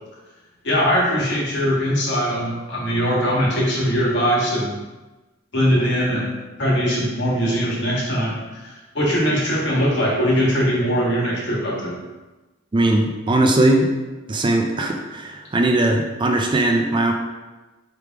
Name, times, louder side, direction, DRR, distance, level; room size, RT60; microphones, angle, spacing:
voice 1, 0.6-4.7 5.5-6.3 6.6-12.0, equal, 65° left, -5 dB, 1.5 m, -21 dB
voice 2, 12.7-13.9 14.3-17.1, right 2 dB, 25° right, 2 dB, 0.4 m, -19 dB
3.4 x 3.3 x 4.5 m, 1.2 s
head